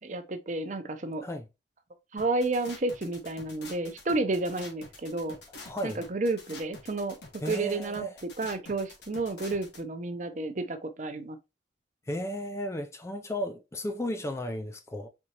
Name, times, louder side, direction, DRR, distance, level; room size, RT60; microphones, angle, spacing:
voice 1, 0.0-1.2 2.1-5.4 5.8-8.0 8.4-11.4, right 2 dB, 40° right, 0.6 m, -31 dB
sound 1, 2.2-9.8, left 3 dB, 65° left, 1.5 m, -47 dB
voice 2, 5.6-6.0 7.4-8.1 12.1-15.1, equal, 15° left, 0.3 m, -34 dB
4.4 x 3.6 x 2.8 m
head